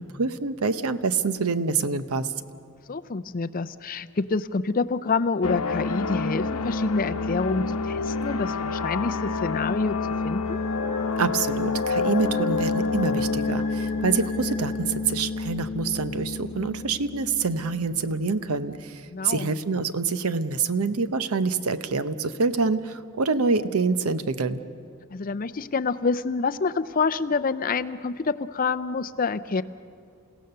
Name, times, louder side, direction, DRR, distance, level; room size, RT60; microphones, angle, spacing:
voice 1, 0.0-2.3 11.2-24.6, right 4 dB, 80° right, 12 dB, 0.8 m, -26 dB
voice 2, 2.9-10.0 10.2-10.6 19.1-19.5 25.1-29.6, left 4 dB, 40° left, 12 dB, 0.5 m, -27 dB
sound 1, 5.4-18.5, left 3 dB, 90° left, 0.9 m, -28 dB
sound 2, 10.4-15.3, left 3 dB, 30° right, 7.1 m, -42 dB
29.0 x 16.5 x 6.8 m, 2.4 s
head